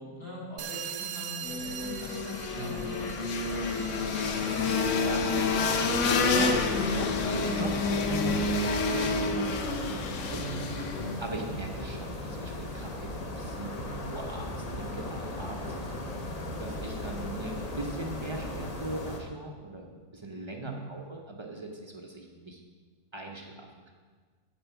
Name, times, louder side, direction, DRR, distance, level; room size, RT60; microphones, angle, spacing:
voice 1, 0.0-3.0 3.3-3.8 4.1-4.2 8.1-8.2 10.4-10.7 13.7-14.2 20.6-20.9, equal, 80° left, -7 dB, 3.8 m, -42 dB
sound 1, 0.6-5.8, right 9 dB, 70° right, 0.9 m, -42 dB
sound 2, 1.4-11.2, left 4 dB, 60° left, 1.0 m, -28 dB
sound 3, 1.7-19.2, left 1 dB, 40° left, 0.6 m, -38 dB
voice 2, 2.5-2.9 4.3-5.5 6.3-8.6 8.9-16.0 16.6-22.6 23.1-23.9, right 2 dB, 40° right, 1 dB, 0.4 m, -40 dB
8.6 x 4.5 x 7.0 m, 1.5 s
omnidirectional pair, 1.7 m